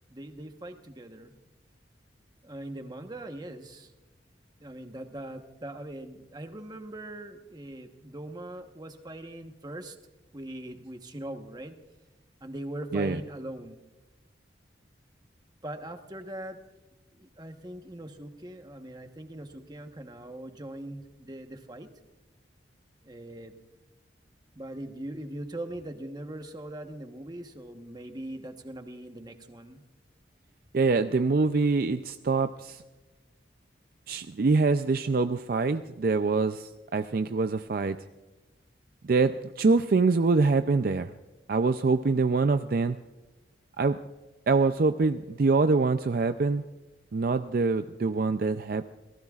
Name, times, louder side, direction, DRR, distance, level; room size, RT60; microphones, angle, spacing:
voice 1, 0.1-1.3 2.4-3.9 4.6-10.0 10.3-11.8 12.4-13.8 15.6-16.6 17.1-21.9 23.0-23.6 24.5-29.8, right 1 dB, 20° right, 1.1 m, -41 dB
voice 2, 30.7-32.8 34.1-38.0 39.0-41.1 41.5-43.0 43.8-44.0 44.5-46.6 47.1-48.9, right 4 dB, 50° right, 0.4 m, -25 dB
27.5 x 19.0 x 2.4 m
head